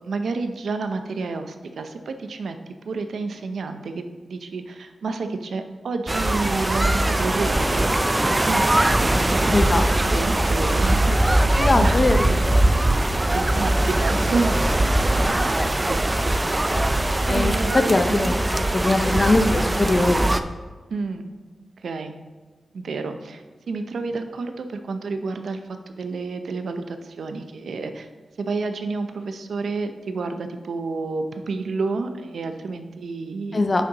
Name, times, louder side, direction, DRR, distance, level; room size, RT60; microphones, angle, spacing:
voice 1, 0.0-2.6 2.9-8.0 8.5-9.0 9.3-11.0 11.8-12.0 13.3-14.7 15.4-16.0 16.3-16.6 17.3-18.3 20.9-21.3 21.8-22.2 22.7-25.6 25.9-28.1 28.4-33.6, right 4 dB, 85° right, 7 dB, 0.6 m, -30 dB
sound 1, 6.1-20.4, right 1 dB, 20° right, 0.4 m, -21 dB
voice 2, 9.5-9.9 11.6-12.6 17.3-20.3 33.5-33.8, left 2 dB, 35° left, 7 dB, 0.6 m, -21 dB
9.1 x 6.5 x 2.9 m, 1.3 s
wide cardioid pair, 115°, 0 cm